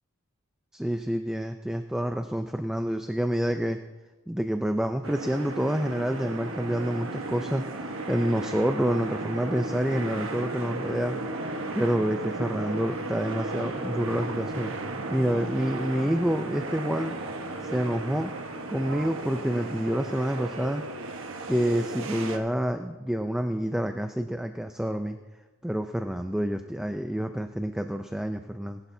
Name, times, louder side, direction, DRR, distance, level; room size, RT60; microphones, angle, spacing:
voice 1, 0.7-3.8 4.3-11.2 11.7-14.7 15.1-17.1 17.6-18.3 18.7-20.8 21.5-25.2 25.6-28.8, equal, 5° right, 6 dB, 0.3 m, -28 dB
sound 1, 5.0-22.4, right 2 dB, 70° right, 1.2 m, -35 dB
19.0 x 11.5 x 2.7 m, 1.3 s
head